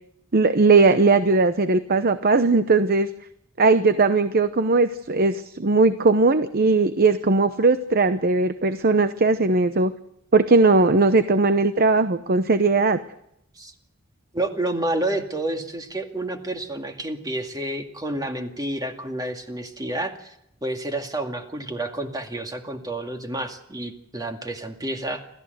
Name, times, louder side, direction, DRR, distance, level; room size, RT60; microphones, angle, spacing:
voice 1, 0.3-3.1 3.6-9.9 10.3-13.0, right 3 dB, 45° right, 11 dB, 0.8 m, -19 dB
voice 2, 14.3-20.3 20.6-25.2, right 1 dB, 20° right, 4 dB, 2.2 m, -29 dB
27.5 x 14.5 x 8.1 m, 0.79 s
head